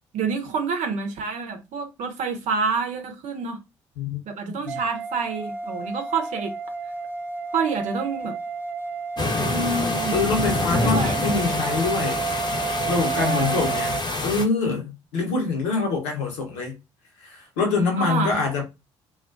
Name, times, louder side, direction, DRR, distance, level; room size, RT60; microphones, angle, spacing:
voice 1, 0.1-3.6 4.3-6.5 7.5-8.4 9.5-10.2 10.8-11.2 13.1-13.6 18.0-18.3, right 4 dB, 55° right, 0.7 m, -27 dB
voice 2, 4.0-4.8 10.1-12.5 12.9-14.0 14.2-16.8 17.2-18.6, left 4 dB, 70° left, 0.9 m, -25 dB
sound 1, 4.7-14.0, right 5 dB, 15° right, 0.4 m, -31 dB
sound 2, 9.2-14.4, left 2 dB, 30° left, 0.8 m, -26 dB
2.4 x 2.2 x 2.4 m
figure-of-eight pair, 45°, 15 cm